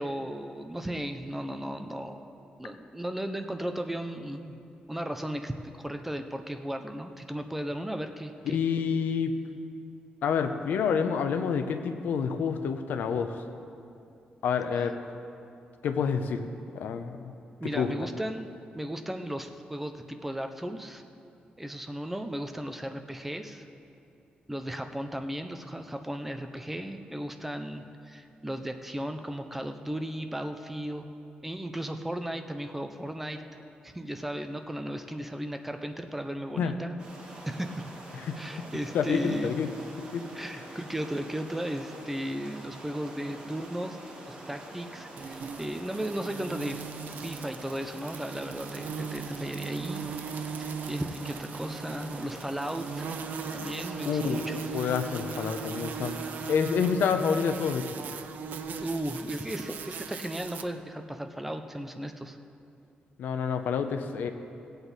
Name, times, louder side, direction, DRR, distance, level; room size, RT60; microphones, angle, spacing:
voice 1, 0.0-2.3 2.6-4.6 4.9-8.6 17.6-21.0 21.6-23.7 24.5-31.1 31.4-33.4 33.8-36.9 37.5-37.9 38.4-39.5 40.3-44.0 44.3-46.9 47.2-50.0 50.4-53.1 53.5-54.7 58.8-62.4, right 1 dB, 5° right, 6 dB, 0.4 m, -35 dB
voice 2, 8.5-9.4 10.2-13.4 14.4-15.0 15.8-16.4 16.7-17.3 17.7-17.9 36.6-36.8 38.1-38.4 38.9-39.7 40.1-40.2 54.0-54.4 54.7-56.2 56.5-57.9 63.2-64.3, left 6 dB, 75° left, 8 dB, 0.7 m, -28 dB
sound 1, 37.0-56.5, right 1 dB, 30° right, 1.6 m, -46 dB
sound 2, 45.2-60.6, right 5 dB, 65° right, 0.6 m, -38 dB
17.5 x 7.9 x 4.0 m, 2.6 s
wide cardioid pair, 180°, 3 cm